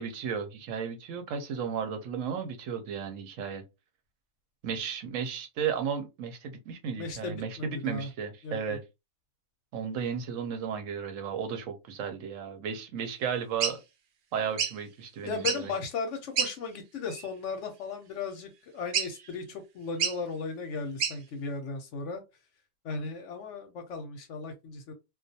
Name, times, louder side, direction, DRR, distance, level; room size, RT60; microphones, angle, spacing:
voice 1, 0.0-3.6 4.6-8.8 9.7-13.8 14.3-15.7, right 7 dB, 70° right, 0.9 m, -34 dB
voice 2, 7.0-8.1 8.4-8.8 15.2-22.2 22.8-24.9, left 4 dB, 70° left, 0.8 m, -36 dB
sound 1, 13.6-13.8 14.6-14.8 15.3-15.7 16.4-16.5 17.1-17.3 18.9-19.3 20.0-20.2 21.0-21.2, right 7 dB, 90° right, 0.4 m, -29 dB
2.3 x 2.2 x 2.6 m
omnidirectional pair, 1.5 m